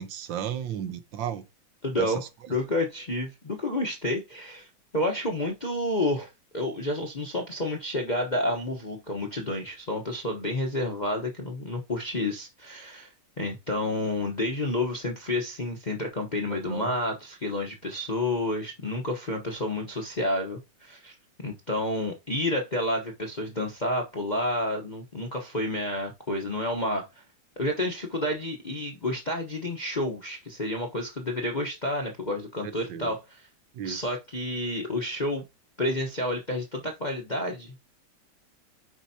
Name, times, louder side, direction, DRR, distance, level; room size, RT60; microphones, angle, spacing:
voice 1, 0.0-1.4 2.0-2.1 16.7-16.9 32.6-33.1 33.8-34.0, right 9 dB, 75° right, 1.6 m, -34 dB
voice 2, 1.8-13.1 13.4-21.1 21.4-27.1 27.6-33.5 33.8-35.4 35.8-37.8, left 1 dB, 30° left, 0.8 m, -30 dB
9.7 x 4.6 x 2.8 m
omnidirectional pair, 2.1 m